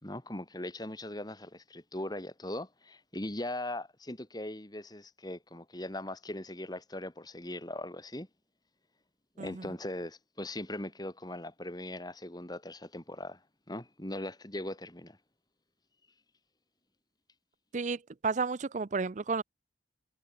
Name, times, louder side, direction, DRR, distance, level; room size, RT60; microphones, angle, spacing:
voice 1, 0.0-8.3 9.4-13.4 13.7-15.2, left 1 dB, 20° left, 2.5 m, -40 dB
voice 2, 17.7-19.4, right 4 dB, 40° right, 0.5 m, -32 dB
head